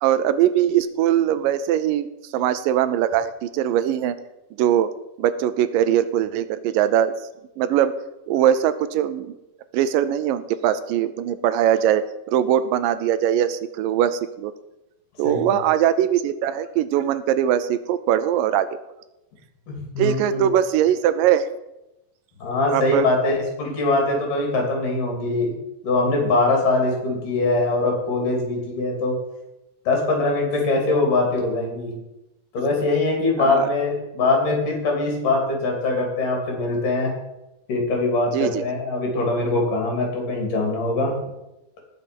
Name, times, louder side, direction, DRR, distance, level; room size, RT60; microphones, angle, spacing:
voice 1, 0.0-2.1 2.3-4.2 4.6-4.9 5.2-7.1 7.6-7.9 8.3-9.3 9.7-14.5 15.2-18.7 20.0-21.5 22.7-23.1 33.4-33.7 38.3-38.6, right 10 dB, 80° right, 13 dB, 2.3 m, -21 dB
voice 2, 15.2-15.6 19.7-20.5 22.4-25.6 25.8-29.2 29.9-31.9 32.5-37.1 37.7-41.1, left 2 dB, 65° left, 1 dB, 4.5 m, -22 dB
18.5 x 6.4 x 5.4 m, 0.93 s
omnidirectional pair, 4.0 m